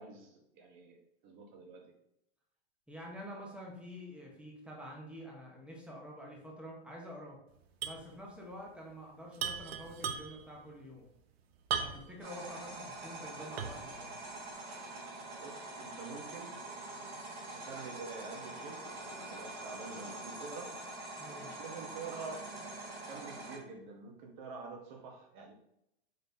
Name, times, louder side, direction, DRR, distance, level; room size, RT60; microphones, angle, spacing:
voice 1, 0.0-1.9 11.9-12.1 15.4-16.6 17.5-20.7 21.3-22.5 23.1-25.5, right 4 dB, 50° right, 3 dB, 1.1 m, -47 dB
voice 2, 2.9-7.4 7.8-11.0 11.8-14.1 21.2-21.5, equal, 5° right, -1 dB, 0.8 m, -48 dB
sound 1, 7.8-8.1 8.3-8.4 9.3-10.5 11.7-12.2 12.7-12.8 13.6-13.9, right 7 dB, 75° right, 0.6 m, -36 dB
sound 2, 12.2-23.6, right 2 dB, 30° right, 1.4 m, -45 dB
4.1 x 3.5 x 2.7 m, 0.80 s
hypercardioid pair, 130°, 31 cm